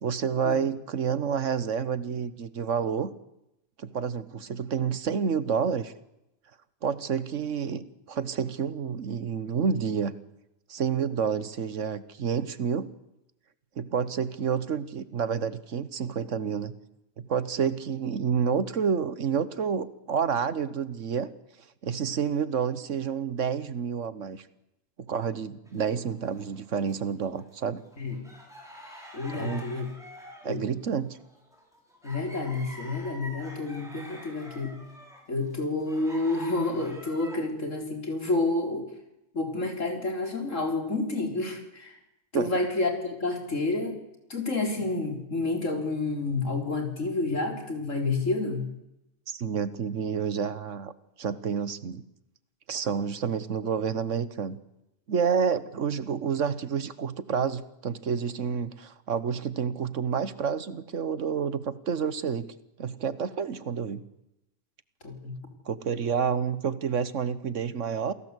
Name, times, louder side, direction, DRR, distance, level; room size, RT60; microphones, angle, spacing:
voice 1, 0.0-3.1 3.8-5.9 6.8-10.1 10.7-12.9 13.8-16.7 17.2-21.3 21.8-24.5 25.0-27.8 29.3-29.7 30.4-31.2 42.3-42.5 49.3-50.9 51.2-52.0 52.7-54.6 55.1-62.5 62.8-64.0 65.6-68.1, right 6 dB, 70° right, 16 dB, 1.5 m, -29 dB
sound 1, 25.7-27.0 27.4-37.4, equal, ahead, 6.4 m, -46 dB
voice 2, 29.1-29.9 30.5-30.7 32.0-34.8 35.3-38.9 39.3-42.0 42.3-44.0 44.3-48.7 65.0-65.3, left 3 dB, 70° left, 5 dB, 4.4 m, -29 dB
28.0 x 18.0 x 8.2 m, 0.88 s
omnidirectional pair, 1.4 m